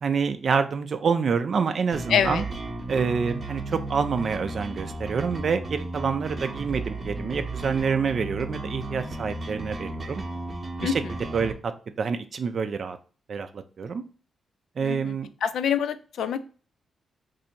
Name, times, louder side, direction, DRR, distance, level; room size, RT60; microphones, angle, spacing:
voice 1, 0.0-2.5 2.9-10.2 10.8-11.0 11.3-11.7 12.0-13.0 13.3-14.0 14.8-15.3, right 5 dB, 50° right, 9 dB, 0.3 m, -27 dB
sound 1, 1.9-11.5, right 2 dB, 30° right, 0.8 m, -34 dB
voice 2, 2.1-2.4 10.8-10.9 14.8-15.1 15.4-16.4, left 8 dB, 85° left, 12 dB, 0.3 m, -25 dB
2.7 x 2.6 x 4.2 m, 0.39 s
cardioid pair, 115°, 0 cm